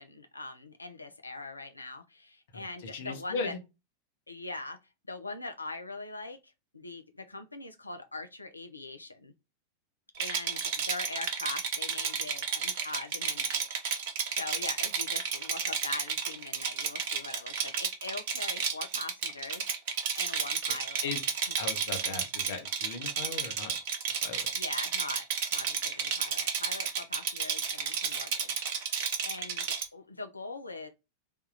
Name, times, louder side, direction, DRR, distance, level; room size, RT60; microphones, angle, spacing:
voice 1, 0.0-3.5 4.3-4.8 5.1-9.3 10.2-13.7 14.3-21.1 24.5-25.3 25.5-30.9, left 3 dB, 80° left, 0.4 m, -42 dB
voice 2, 2.5-3.6 21.0-21.2 21.6-23.8 24.2-24.5, left 5 dB, 60° left, 0.7 m, -37 dB
Rattle, 10.2-29.9, right 6 dB, 50° right, 0.6 m, -32 dB
3.4 x 2.2 x 2.6 m
figure-of-eight pair, 90°, 0 cm